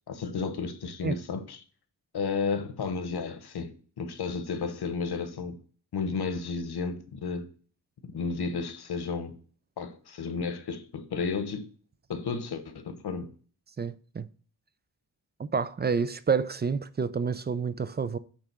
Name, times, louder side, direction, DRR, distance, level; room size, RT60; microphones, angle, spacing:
voice 1, 0.1-1.6 2.1-5.6 5.9-7.5 8.0-9.3 9.8-11.7 12.1-13.3, left 5 dB, 80° left, 1.1 m, -32 dB
voice 2, 13.8-14.3 15.4-18.2, right 5 dB, 30° right, 0.3 m, -29 dB
8.7 x 3.4 x 6.0 m
wide cardioid pair, 150°, 39 cm